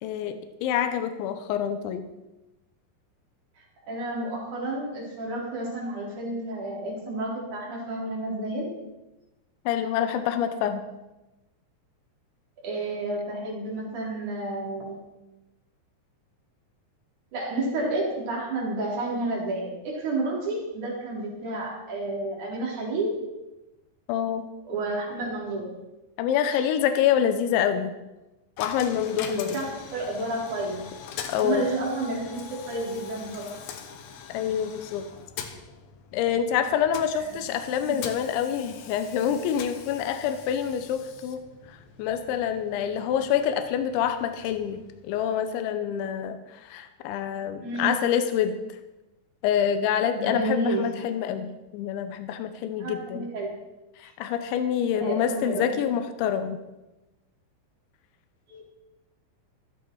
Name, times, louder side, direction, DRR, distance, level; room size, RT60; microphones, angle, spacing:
voice 1, 0.0-2.1 9.7-10.8 24.1-24.4 26.2-27.9 28.6-29.6 31.3-31.7 34.3-35.1 36.1-41.4 41.7-44.8 45.0-48.6 49.4-53.3 54.0-56.6, left 9 dB, 85° left, 8 dB, 3.2 m, -26 dB
voice 2, 3.6-8.8 12.6-15.0 17.3-23.2 24.6-25.7 29.2-29.7 29.9-30.8 31.4-33.6 37.1-37.2 37.8-38.0 47.6-48.0 50.1-51.0 52.8-53.5 55.0-55.7 58.5-58.6, right 2 dB, 45° right, -4 dB, 5.2 m, -30 dB
Coin (dropping), 28.6-45.5, left 7 dB, 70° left, 2.5 m, -43 dB
15.0 x 14.0 x 4.7 m, 1.0 s
omnidirectional pair, 5.2 m